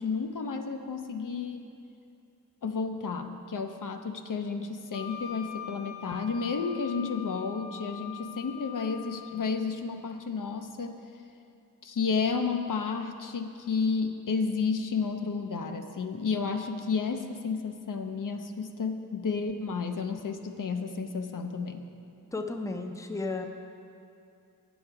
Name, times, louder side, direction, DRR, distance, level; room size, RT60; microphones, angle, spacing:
voice 1, 0.0-1.7 2.6-11.0 11.8-21.9, left 5 dB, 65° left, 6 dB, 0.6 m, -31 dB
Wind instrument woodwind instrument, 4.9-9.4, left 10 dB, 85° left, 1.4 m, -43 dB
voice 2, 22.3-23.5, left 3 dB, 10° left, 5 dB, 0.5 m, -33 dB
8.8 x 7.2 x 4.6 m, 2.5 s
wide cardioid pair, 75°, 35 cm